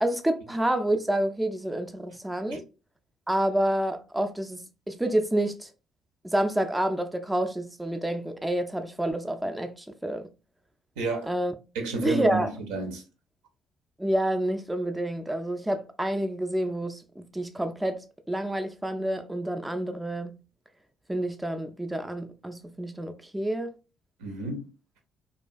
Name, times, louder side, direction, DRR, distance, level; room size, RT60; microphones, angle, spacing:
voice 1, 0.0-2.6 3.3-5.7 6.2-10.3 11.3-11.5 12.0-12.5 14.0-20.4 21.1-23.7, right 1 dB, 10° right, 0.3 m, -28 dB
voice 2, 11.0-11.3 11.7-13.0 24.2-24.6, right 3 dB, 70° right, 0.5 m, -30 dB
2.3 x 2.2 x 2.3 m
figure-of-eight pair, 50°, 0 cm